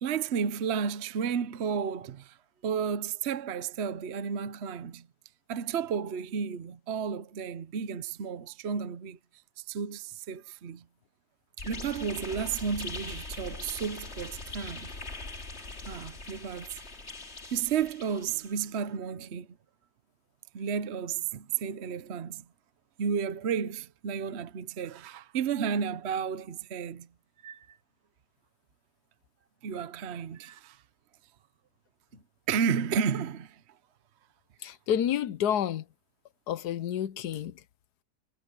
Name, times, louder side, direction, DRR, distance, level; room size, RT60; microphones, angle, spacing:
voice 1, 0.0-2.4 2.6-5.1 5.5-9.2 9.6-10.8 11.6-14.9 15.8-16.8 17.5-19.5 20.5-22.4 23.0-27.1 27.4-27.8 29.6-30.8 32.5-33.6, right 7 dB, 50° right, 0.9 m, -32 dB
sound 1, 11.6-18.6, left 3 dB, 40° left, 2.8 m, -41 dB
voice 2, 34.6-35.8 36.5-37.5, left 9 dB, 75° left, 1.3 m, -29 dB
omnidirectional pair, 1.8 m